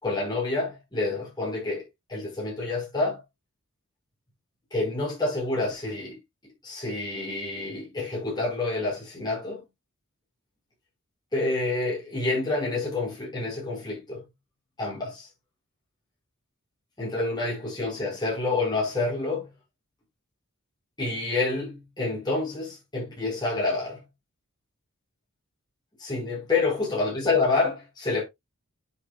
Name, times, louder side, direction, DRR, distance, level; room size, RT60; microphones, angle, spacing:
voice 1, 0.0-1.8 2.1-3.2 4.7-6.2 6.6-9.6 11.3-14.2 14.8-15.3 17.0-19.5 21.0-24.0 26.0-28.2, left 3 dB, 20° left, 5.0 m, -28 dB
9.8 x 7.1 x 2.4 m
head